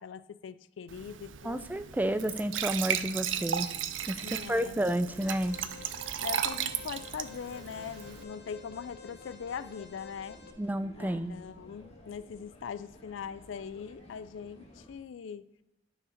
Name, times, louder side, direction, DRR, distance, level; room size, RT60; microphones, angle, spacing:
voice 1, 0.0-1.8 4.2-4.8 6.2-10.4 11.0-15.5, left 7 dB, 85° left, 16 dB, 0.4 m, -41 dB
Glass / Trickle dribble / Fill (with liquid), 0.9-8.2, right 9 dB, 80° right, 0.5 m, -35 dB
voice 2, 1.4-3.7 4.1-4.2 4.5-5.6 10.6-11.3, right 1 dB, 10° right, 11 dB, 0.3 m, -30 dB
Alarm, 5.1-10.5, left 6 dB, 55° left, 1.0 m, -51 dB
sound 1, 5.4-14.9, equal, 35° left, 1.6 m, -54 dB
9.7 x 4.8 x 5.1 m, 0.89 s
head